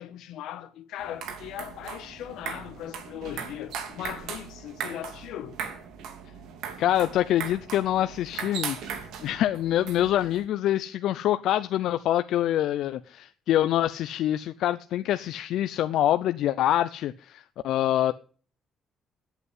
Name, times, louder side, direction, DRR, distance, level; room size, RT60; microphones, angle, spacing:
voice 1, 0.0-5.6, left 11 dB, 90° left, 1.3 m, -39 dB
sound 1, 1.0-10.4, right 7 dB, 80° right, 2.5 m, -38 dB
voice 2, 6.8-18.1, left 12 dB, 70° left, 0.5 m, -25 dB
9.9 x 8.2 x 9.6 m
cardioid pair, 170°, 0 cm